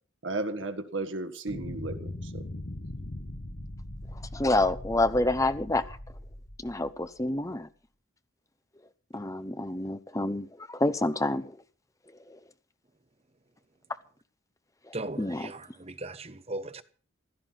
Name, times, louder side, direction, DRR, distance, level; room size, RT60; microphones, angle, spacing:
voice 1, 0.2-2.4, right 2 dB, 70° right, 1.7 m, -34 dB
sound 1, 1.5-7.2, left 1 dB, 55° left, 1.4 m, -40 dB
voice 2, 4.3-5.8 6.6-7.7 9.1-11.4 15.2-15.4, left 2 dB, 15° left, 0.9 m, -27 dB
voice 3, 14.9-16.8, right 2 dB, 30° right, 1.0 m, -38 dB
16.0 x 12.0 x 5.8 m
head